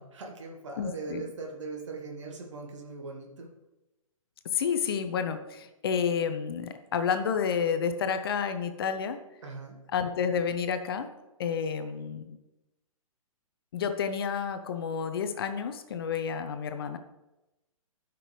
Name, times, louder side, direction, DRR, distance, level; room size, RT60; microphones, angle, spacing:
voice 1, 0.0-3.5 9.4-9.8, right 3 dB, 55° right, 1 dB, 1.6 m, -40 dB
voice 2, 0.8-1.3 4.5-9.2 9.9-11.1 11.4-12.4 13.7-17.0, left 6 dB, 45° left, 9 dB, 0.7 m, -30 dB
13.0 x 6.0 x 3.2 m, 0.99 s
figure-of-eight pair, 125°, 18 cm